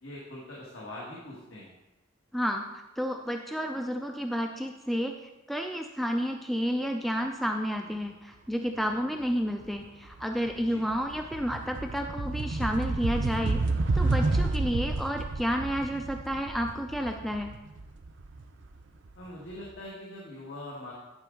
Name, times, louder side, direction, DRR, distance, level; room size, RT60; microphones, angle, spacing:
voice 1, 0.0-1.7 10.5-10.8 19.1-20.9, left 1 dB, 70° left, -5 dB, 1.6 m, -42 dB
voice 2, 2.3-5.1 5.5-13.6 13.9-17.5, equal, ahead, 4 dB, 0.3 m, -31 dB
sound 1, 9.6-9.9 10.2-19.1, right 3 dB, 65° right, 0.6 m, -30 dB
11.0 x 5.1 x 3.8 m, 1.0 s
head